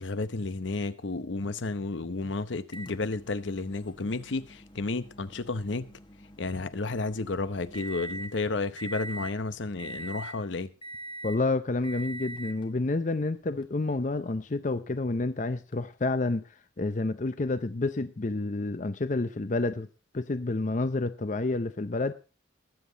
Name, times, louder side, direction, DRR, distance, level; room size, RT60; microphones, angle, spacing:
voice 1, 0.0-5.9 6.4-10.7, left 3 dB, 70° left, 0.8 m, -32 dB
Microwave oven, 2.7-8.4 8.8-9.4 9.8-10.4 10.8-11.4 11.8-12.7 13.6-13.7 15.7-15.8, right 1 dB, 25° left, 1.1 m, -43 dB
voice 2, 11.2-16.4 16.8-19.9 20.1-22.1, left 2 dB, 40° left, 0.6 m, -29 dB
21.0 x 7.5 x 4.0 m
head